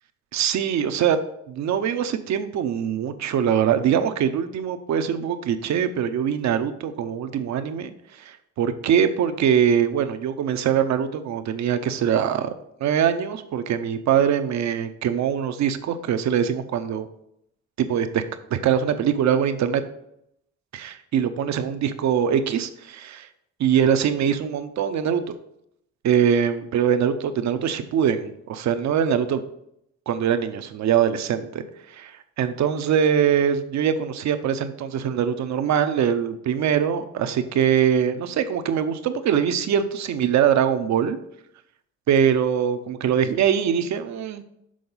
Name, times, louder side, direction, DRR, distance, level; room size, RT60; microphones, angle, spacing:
voice 1, 0.3-1.2 1.5-12.5 12.8-17.1 17.8-18.2 18.5-19.8 20.7-23.3 23.6-25.3 26.0-29.4 30.1-31.6 31.9-32.1 32.4-41.2 42.1-44.4, right 8 dB, 65° right, 9 dB, 0.7 m, -22 dB
6.3 x 3.9 x 5.4 m, 0.77 s
cardioid pair, 90°, 30 cm